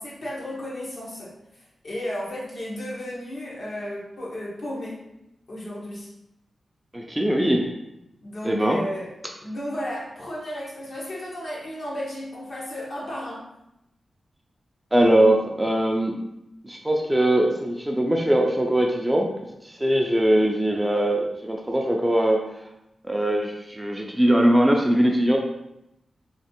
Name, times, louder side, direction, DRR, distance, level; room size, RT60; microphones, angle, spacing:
voice 1, 0.0-5.0 5.5-6.1 8.2-9.1 9.4-13.5, left 1 dB, 60° left, -6 dB, 1.2 m, -34 dB
voice 2, 6.9-7.7 8.4-8.8 14.9-16.2 16.6-19.3 19.6-22.4 23.0-25.4, right 1 dB, 10° right, 0 dB, 0.4 m, -21 dB
3.1 x 2.8 x 2.9 m, 0.84 s
wide cardioid pair, 100°, 0 cm